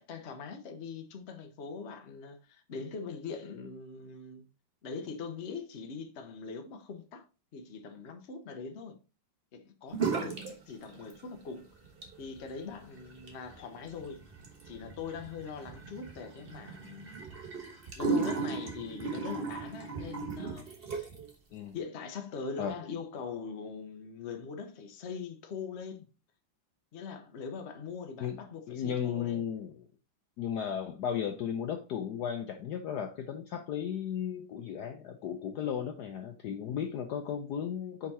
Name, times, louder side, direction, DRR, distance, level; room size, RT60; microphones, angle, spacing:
voice 1, 0.0-4.5 4.8-7.2 7.5-9.0 9.5-11.7 12.2-14.2 14.7-17.1 18.0-21.1 21.7-26.1 26.9-29.5, left 5 dB, 50° left, 0.9 m, -42 dB
sound 1, 9.9-10.5 10.8-11.5 11.8-21.3, right 5 dB, 35° right, 1.1 m, -36 dB
voice 2, 28.7-29.8 30.4-38.1, left 8 dB, 70° left, 1.0 m, -35 dB
5.0 x 4.6 x 4.2 m
omnidirectional pair, 2.2 m